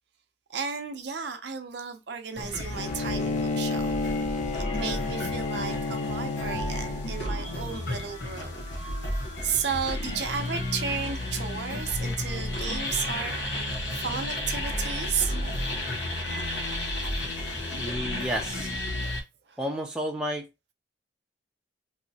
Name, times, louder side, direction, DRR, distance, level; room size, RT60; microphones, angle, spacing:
voice 1, 0.5-3.9 4.3-4.4 4.7-8.6 9.4-13.3 13.9-15.3 19.1-19.2 19.5-19.6, right 6 dB, 65° right, 0.6 m, -33 dB
sound 1, 2.3-19.2, left 1 dB, 80° left, 0.9 m, -32 dB
Bowed string instrument, 2.7-7.4, left 3 dB, 35° left, 0.3 m, -31 dB
sound 2, 6.3-18.2, left 1 dB, 30° right, 0.8 m, -50 dB
voice 2, 17.8-18.7 19.6-20.5, equal, 5° right, 0.6 m, -31 dB
3.1 x 2.7 x 2.7 m
head